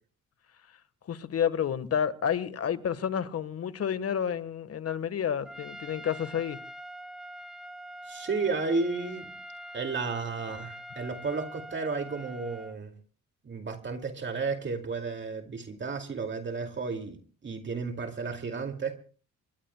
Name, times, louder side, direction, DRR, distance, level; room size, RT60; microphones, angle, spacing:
voice 1, 1.1-6.6, left 8 dB, 50° left, 1.4 m, -30 dB
Trumpet, 5.5-12.8, equal, ahead, 2.3 m, -44 dB
voice 2, 8.0-9.3 9.7-12.9 13.4-19.0, right 4 dB, 40° right, 2.4 m, -33 dB
25.0 x 22.5 x 2.2 m
cardioid pair, 90°, 30 cm